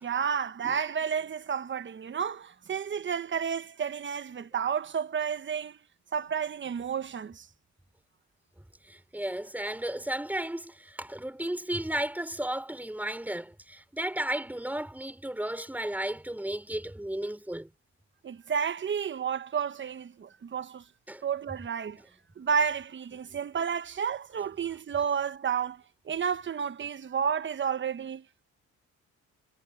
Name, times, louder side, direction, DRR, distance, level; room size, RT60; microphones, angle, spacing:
voice 1, 0.0-5.8 6.1-7.5 18.2-20.8 21.2-22.0 22.4-28.2, right 7 dB, 40° right, 1.0 m, -31 dB
voice 2, 8.9-17.7 21.1-21.2, right 1 dB, 5° right, 3.7 m, -34 dB
cardioid pair, 90°, 30 cm